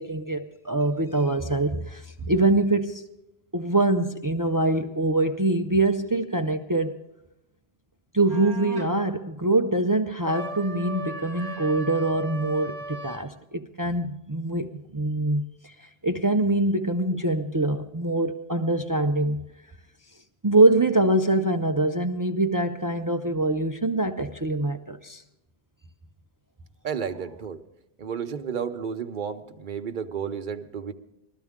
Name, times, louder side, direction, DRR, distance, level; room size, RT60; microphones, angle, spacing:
voice 1, 0.0-3.0 3.5-6.9 8.1-19.4 20.4-25.2, right 2 dB, 35° right, 0.3 m, -24 dB
sound 1, 8.3-8.9 10.2-13.3, right 1 dB, 5° left, 1.4 m, -37 dB
voice 2, 26.8-27.6 28.0-30.9, right 7 dB, 50° right, 0.9 m, -32 dB
20.0 x 13.5 x 3.6 m
omnidirectional pair, 1.1 m